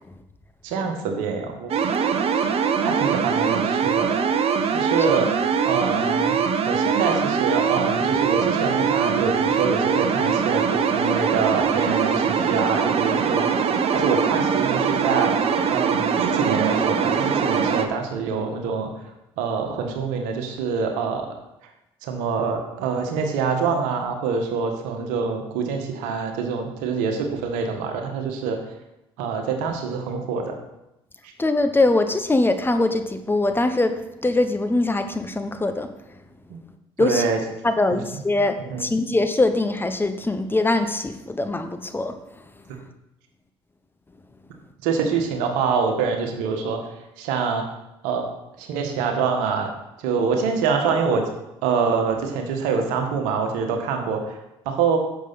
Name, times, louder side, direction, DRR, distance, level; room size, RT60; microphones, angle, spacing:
voice 1, 0.6-1.7 2.8-4.2 4.7-5.3 5.6-6.3 6.7-13.7 13.9-15.3 15.7-18.9 19.4-21.3 22.0-28.6 29.2-30.5 36.5-36.6 37.0-37.4 37.9-38.0 38.7-38.9 44.8-46.8 47.2-47.6 48.0-48.2 48.6-49.7 50.0-51.2 51.6-54.4 54.6-55.0, right 5 dB, 70° right, 4 dB, 1.5 m, -25 dB
sound 1, 1.7-17.9, right 6 dB, 50° right, 1.0 m, -22 dB
voice 2, 31.4-34.0 34.2-35.9 37.0-37.3 37.6-42.1, left 2 dB, 15° left, 8 dB, 1.0 m, -22 dB
10.5 x 7.1 x 4.2 m, 0.91 s
hypercardioid pair, 55°, 13 cm